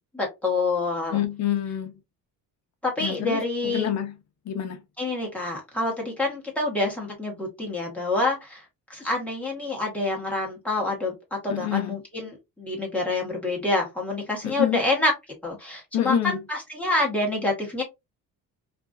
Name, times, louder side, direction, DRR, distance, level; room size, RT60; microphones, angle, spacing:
voice 1, 0.1-1.2 2.8-3.9 5.0-8.6 8.9-11.1 11.4-15.1 15.4-17.8, left 2 dB, 5° left, 1.0 m, -27 dB
voice 2, 1.1-1.9 3.0-4.1 4.5-4.8 11.5-12.0 14.4-14.8 15.9-16.4, left 9 dB, 50° left, 0.6 m, -27 dB
2.5 x 2.3 x 2.2 m
cardioid pair, 150°, 35 cm